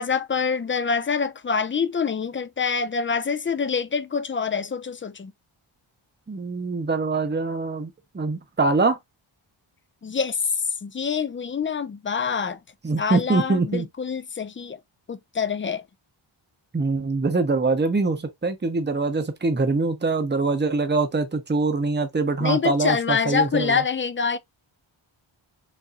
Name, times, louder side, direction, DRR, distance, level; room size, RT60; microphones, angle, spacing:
voice 1, 0.0-5.3 10.0-10.5 10.8-12.6 13.0-14.8 15.1-15.8 22.4-24.4, left 6 dB, 30° left, 0.3 m, -26 dB
voice 2, 6.3-9.0 12.8-13.9 16.7-23.8, right 3 dB, 20° right, 0.8 m, -24 dB
4.1 x 2.7 x 2.3 m
wide cardioid pair, 95°, 50 cm